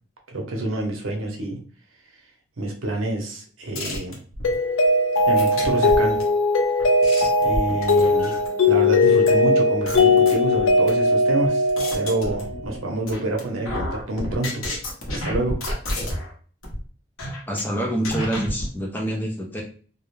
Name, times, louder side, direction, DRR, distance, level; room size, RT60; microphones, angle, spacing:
voice 1, 0.3-1.6 2.6-4.2 5.3-6.2 7.4-8.4 8.7-14.6 15.1-15.6, right 2 dB, 85° right, 1 dB, 0.7 m, -27 dB
sound 1, 3.8-4.5 5.4-6.2 6.8-8.6 9.3-9.4 9.9-10.9 11.4-12.8 13.1-13.4 13.7-16.3 16.6-16.8 17.2-17.6 18.0-18.7, left 1 dB, 90° left, 0.8 m, -30 dB
Mallet percussion, 4.4-12.6, left 2 dB, 70° left, 0.4 m, -19 dB
voice 2, 17.5-19.6, right 1 dB, 10° left, 0 dB, 0.4 m, -26 dB
2.3 x 2.1 x 3.0 m, 0.43 s
head